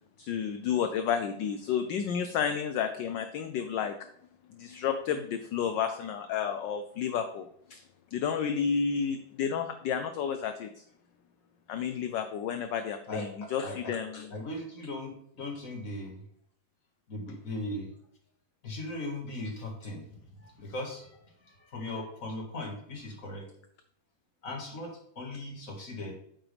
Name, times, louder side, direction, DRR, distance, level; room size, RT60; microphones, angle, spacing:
voice 1, 0.2-3.9 4.5-7.8 8.1-10.8 11.7-14.3, left 7 dB, 70° left, 9 dB, 1.2 m, -31 dB
voice 2, 13.6-13.9 14.3-16.2 17.1-17.9 18.6-23.5 24.4-26.2, left 1 dB, 40° left, 1 dB, 2.1 m, -38 dB
9.0 x 7.9 x 3.4 m, 0.68 s
omnidirectional pair, 2.4 m